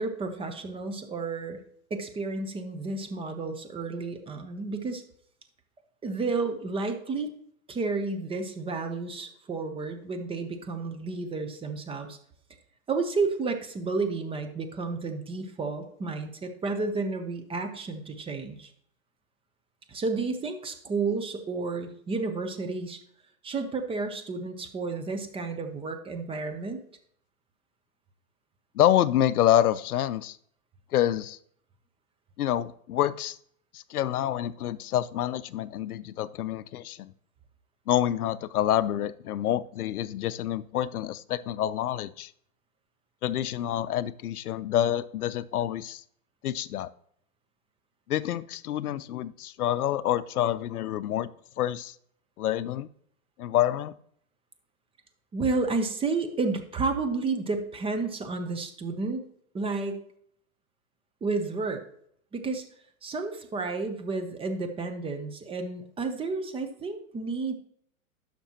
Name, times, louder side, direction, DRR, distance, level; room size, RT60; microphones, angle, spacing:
voice 1, 0.0-1.6 1.9-5.0 6.0-7.3 7.7-12.2 12.9-18.7 19.9-23.0 23.4-26.8 55.3-59.2 59.5-60.0 61.2-61.8 62.3-62.6 63.0-67.5, right 3 dB, 15° right, 6 dB, 0.7 m, -31 dB
voice 2, 28.7-30.4 30.9-31.4 32.4-33.4 33.7-37.1 37.9-42.3 43.2-46.0 46.4-46.9 48.1-51.3 51.6-51.9 52.4-52.9 53.4-53.9, left 12 dB, 85° left, 17 dB, 0.5 m, -27 dB
11.5 x 6.0 x 2.9 m, 0.66 s
hypercardioid pair, 115°, 43 cm